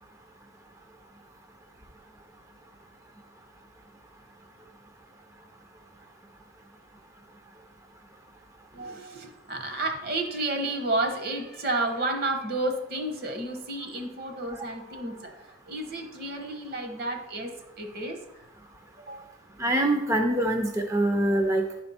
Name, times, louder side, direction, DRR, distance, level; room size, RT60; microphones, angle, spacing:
voice 1, 8.7-18.2 19.0-19.2, right 2 dB, 55° right, 5 dB, 1.0 m, -31 dB
voice 2, 19.6-21.8, right 1 dB, 15° right, 3 dB, 0.5 m, -24 dB
10.5 x 4.4 x 4.2 m, 0.98 s
head